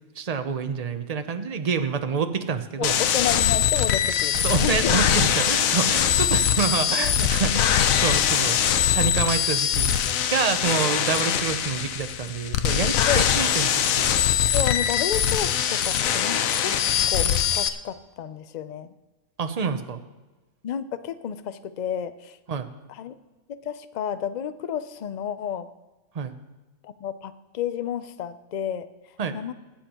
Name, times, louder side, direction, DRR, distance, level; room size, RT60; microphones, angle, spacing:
voice 1, 0.2-3.0 4.4-9.9 10.3-14.1 19.4-20.0 22.5-22.7 26.1-26.3 29.2-29.4, right 5 dB, 35° right, 9 dB, 0.7 m, -27 dB
sound 1, 2.8-17.7, left 9 dB, 90° left, 1.1 m, -22 dB
voice 2, 2.8-5.0 13.1-13.2 14.5-16.8 17.1-18.9 20.6-22.4 22.9-23.1 23.5-25.7 26.8-28.9 29.3-29.5, left 9 dB, 55° left, 12 dB, 0.5 m, -31 dB
20.0 x 10.0 x 3.0 m, 1.2 s
omnidirectional pair, 1.4 m